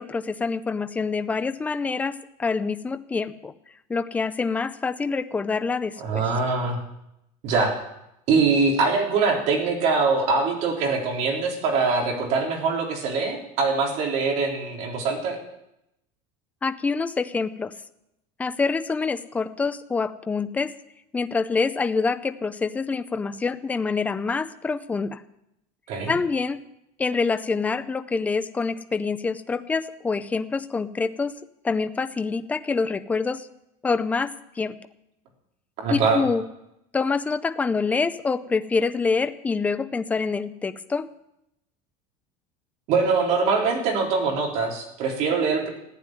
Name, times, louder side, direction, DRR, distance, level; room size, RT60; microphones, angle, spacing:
voice 1, 0.0-2.1 2.4-3.5 3.9-6.3 16.6-17.7 18.4-20.7 21.1-25.2 26.1-26.6 27.0-31.3 31.6-33.5 33.8-34.3 34.6-34.7 35.9-36.4 36.9-41.1, left 4 dB, 10° left, 11 dB, 0.5 m, -26 dB
voice 2, 6.0-6.8 7.4-7.7 8.3-15.4 25.9-26.1 35.8-36.2 42.9-45.7, right 4 dB, 50° right, 1 dB, 3.9 m, -23 dB
15.0 x 9.6 x 9.1 m, 0.84 s
cardioid pair, 170°, 16 cm